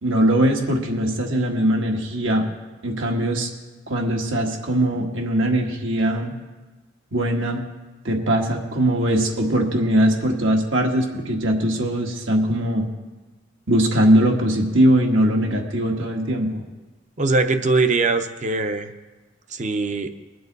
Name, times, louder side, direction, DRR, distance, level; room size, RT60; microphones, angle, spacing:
voice 1, 0.0-2.4 2.8-3.5 3.9-6.3 7.1-7.6 8.0-12.9 13.7-16.6, right 1 dB, 80° right, 1 dB, 1.7 m, -21 dB
voice 2, 17.2-18.9 19.5-20.1, right 3 dB, 40° right, 7 dB, 0.7 m, -21 dB
21.0 x 7.7 x 4.0 m, 1.2 s
head